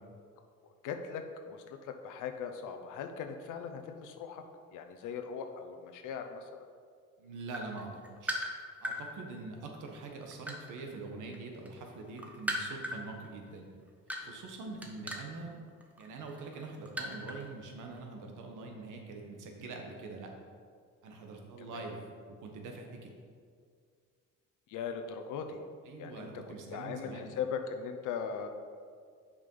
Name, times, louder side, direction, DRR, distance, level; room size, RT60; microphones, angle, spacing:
voice 1, 0.6-4.4 4.7-6.7 15.2-15.4 21.7-21.9 24.7-25.6 26.0-26.4 26.7-28.5, left 6 dB, 90° left, 6 dB, 0.8 m, -39 dB
voice 2, 7.2-7.9 8.2-8.3 8.8-13.7 14.2-15.6 16.0-20.3 21.0-22.1 22.4-23.1 25.8-27.3, right 3 dB, 80° right, 2 dB, 1.3 m, -44 dB
sound 1, 7.4-9.0 9.7-11.4 11.7-17.5 17.8-18.0, equal, 5° right, 1.1 m, -38 dB
7.0 x 5.1 x 5.4 m, 2.1 s
cardioid pair, 90°, 30 cm